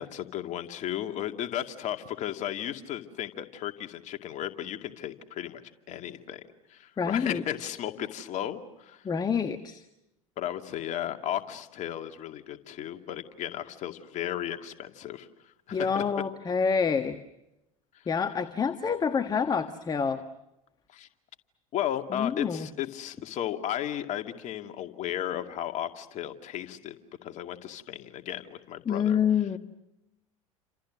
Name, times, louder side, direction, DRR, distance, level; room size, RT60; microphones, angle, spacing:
voice 1, 0.0-5.6 5.9-6.4 6.7-9.1 10.4-16.0 17.9-18.0 20.9-21.1 21.7-26.9 27.2-29.2, left 11 dB, 40° left, 6 dB, 2.3 m, -35 dB
voice 2, 7.0-7.4 9.0-9.8 15.7-17.2 18.1-20.2 22.1-22.7 28.8-29.6, left 6 dB, 20° left, 9 dB, 1.5 m, -27 dB
30.0 x 27.5 x 6.4 m, 0.90 s
figure-of-eight pair, 75°, 18 cm